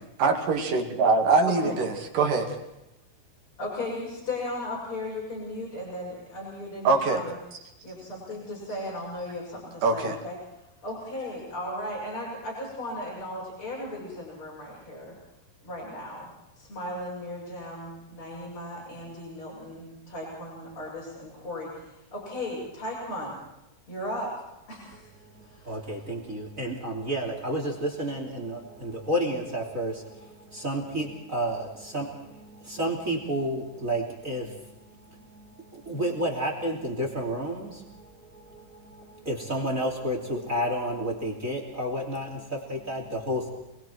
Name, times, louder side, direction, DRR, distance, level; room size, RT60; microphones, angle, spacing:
voice 1, 0.0-2.6 6.8-7.3 9.8-10.2, right 4 dB, 60° right, 3 dB, 3.7 m, -23 dB
voice 2, 3.6-7.3 7.8-10.3 10.8-15.1 15.6-16.3 16.6-23.4 23.9-24.3 24.7-25.1 25.4-25.7, left 1 dB, 30° left, -6 dB, 8.0 m, -36 dB
voice 3, 25.1-43.5, right 1 dB, 20° right, 2 dB, 3.0 m, -31 dB
29.5 x 21.5 x 4.6 m, 0.91 s
omnidirectional pair, 4.6 m